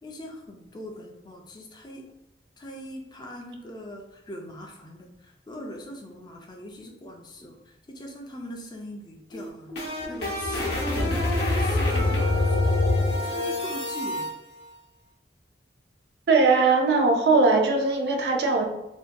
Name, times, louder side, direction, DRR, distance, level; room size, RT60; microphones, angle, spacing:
voice 1, 0.0-2.1 2.6-9.7 10.1-12.8 13.2-14.3, equal, 25° left, 1 dB, 0.3 m, -41 dB
sound 1, 9.3-14.3, left 2 dB, 70° left, 0.7 m, -25 dB
voice 2, 16.3-18.7, right 3 dB, 65° right, 3 dB, 0.4 m, -20 dB
2.6 x 2.2 x 2.4 m, 0.90 s
head